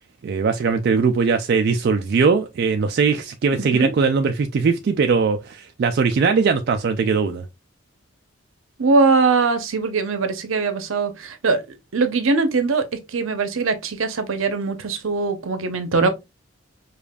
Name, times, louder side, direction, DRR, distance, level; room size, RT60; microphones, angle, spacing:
voice 1, 0.2-7.5, right 5 dB, 50° right, 0.3 m, -20 dB
voice 2, 3.5-3.9 8.8-11.6 11.9-12.8 13.1-16.1, right 4 dB, 80° right, 0.7 m, -21 dB
5.0 x 2.4 x 2.2 m
head